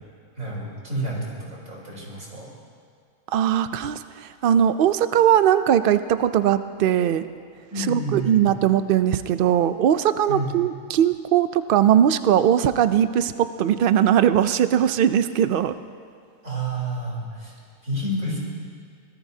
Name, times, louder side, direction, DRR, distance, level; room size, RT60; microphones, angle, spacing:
voice 1, 0.4-2.5 7.7-8.4 10.3-10.5 16.4-17.5 17.8-18.4, right 1 dB, 70° right, -4 dB, 4.2 m, -29 dB
voice 2, 3.3-7.3 7.8-15.8, right 10 dB, 90° right, 11 dB, 0.4 m, -20 dB
24.5 x 17.5 x 2.8 m, 2.1 s
omnidirectional pair, 1.5 m